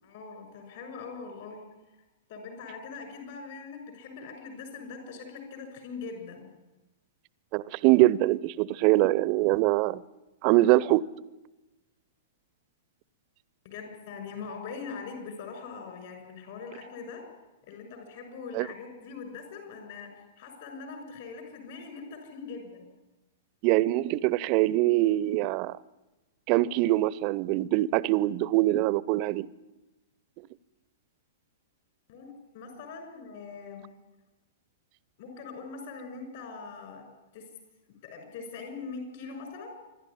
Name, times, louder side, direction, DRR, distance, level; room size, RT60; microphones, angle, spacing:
voice 1, 0.0-1.6 1.9-2.0 2.3-6.5 13.6-17.2 17.7-22.9 32.1-33.9 35.2-37.0 37.3-37.5 38.0-39.7, left 4 dB, 55° left, 6.7 m, -42 dB
voice 2, 7.5-10.0 10.4-11.0 18.5-18.7 23.6-25.8 26.5-29.5, right 17 dB, 40° right, 0.6 m, -23 dB
26.5 x 12.0 x 10.0 m
figure-of-eight pair, 105°, 0 cm